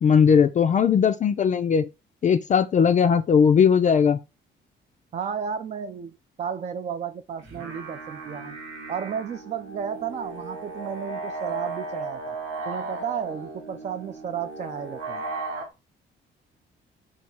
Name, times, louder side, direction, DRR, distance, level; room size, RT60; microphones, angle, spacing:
voice 1, 0.0-1.9 2.2-4.2, left 7 dB, 40° left, 0.4 m, -19 dB
voice 2, 5.1-8.6 8.9-12.4 12.7-15.2, right 7 dB, 35° right, 0.4 m, -33 dB
sound 1, 7.4-15.6, right 3 dB, 90° right, 1.1 m, -36 dB
3.5 x 2.3 x 4.1 m
cardioid pair, 90°, 20 cm